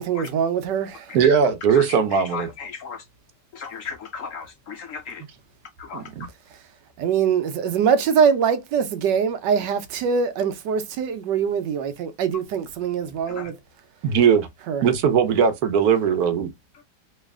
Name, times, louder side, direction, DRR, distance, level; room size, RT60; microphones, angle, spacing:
voice 1, 0.0-1.2 6.5-6.7 7.0-13.6 14.7-14.9, right 7 dB, 85° right, 1.3 m, -23 dB
voice 2, 1.1-2.5 5.9-6.3 14.0-14.5 14.8-16.5, right 7 dB, 65° right, 1.1 m, -19 dB
voice 3, 1.7-3.0 3.5-5.2 5.8-6.1 13.3-13.5, left 6 dB, 75° left, 0.7 m, -36 dB
3.2 x 2.8 x 3.4 m
omnidirectional pair, 1.8 m